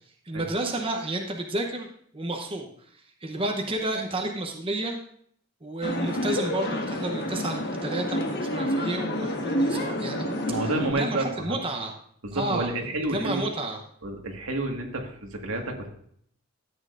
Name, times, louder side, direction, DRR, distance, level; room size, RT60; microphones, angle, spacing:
voice 1, 0.3-1.9 2.1-2.7 3.2-5.0 5.6-11.9 12.3-13.8, right 1 dB, 25° right, 2 dB, 0.9 m, -31 dB
sound 1, 5.8-10.9, equal, 50° left, 1.4 m, -28 dB
voice 2, 10.5-11.6 12.2-13.5 14.0-15.9, right 2 dB, 85° right, 2 dB, 1.8 m, -30 dB
13.5 x 8.9 x 2.6 m, 0.64 s
head